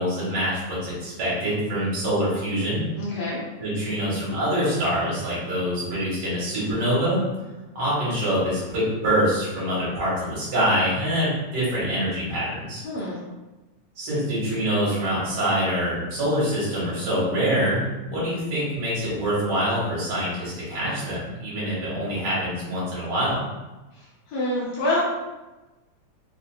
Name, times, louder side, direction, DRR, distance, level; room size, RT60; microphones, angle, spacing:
voice 1, 0.0-2.8 3.6-7.2 7.8-12.8 14.0-23.5, equal, 60° right, -9 dB, 2.4 m, -25 dB
voice 2, 3.0-3.4 12.8-13.2 23.9-25.0, left 1 dB, 70° left, -7 dB, 1.7 m, -27 dB
5.2 x 2.6 x 2.4 m, 1.1 s
omnidirectional pair, 3.4 m